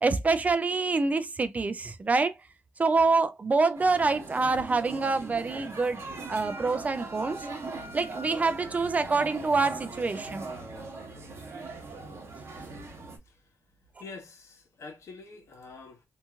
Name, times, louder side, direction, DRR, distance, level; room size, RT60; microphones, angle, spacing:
voice 1, 0.0-2.4 2.8-6.0 6.3-7.5 7.9-10.5, right 3 dB, 30° right, 0.4 m, -26 dB
sound 1, 3.7-13.2, right 3 dB, 60° right, 1.2 m, -40 dB
voice 2, 14.0-16.0, left 4 dB, 80° left, 1.0 m, -46 dB
2.9 x 2.7 x 2.3 m
wide cardioid pair, 145°, 5 cm